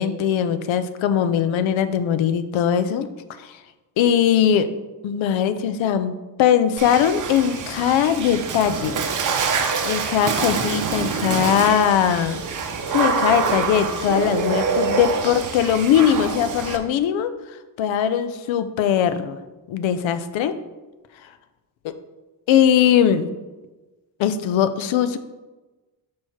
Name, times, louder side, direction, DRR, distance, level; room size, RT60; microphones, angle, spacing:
voice 1, 0.0-3.1 3.4-3.5 4.0-4.7 5.0-6.1 6.4-9.0 9.8-12.4 12.9-17.3 17.8-19.4 19.7-20.5 22.5-23.3 24.2-25.2, left 9 dB, 80° left, 11 dB, 0.7 m, -20 dB
Water / Splash splatter, 6.8-16.8, right 5 dB, 40° right, 0.8 m, -25 dB
6.2 x 3.2 x 5.6 m, 1.2 s
cardioid pair, 120°, 46 cm